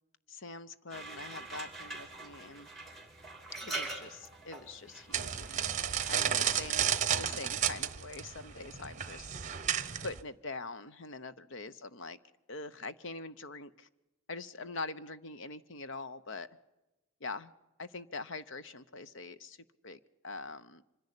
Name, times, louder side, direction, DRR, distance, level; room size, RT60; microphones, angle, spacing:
voice 1, 0.3-2.7 3.6-6.9 7.2-9.4 10.0-12.2 12.5-13.9 14.3-16.5 17.2-17.5 17.8-19.6 19.8-20.0 20.2-20.8, left 3 dB, 60° left, 14 dB, 0.8 m, -44 dB
sound 1, 0.9-7.9, right 2 dB, ahead, 2.6 m, -45 dB
sound 2, 5.1-10.2, right 9 dB, 35° right, 0.9 m, -32 dB
25.5 x 10.5 x 9.9 m, 1.0 s
head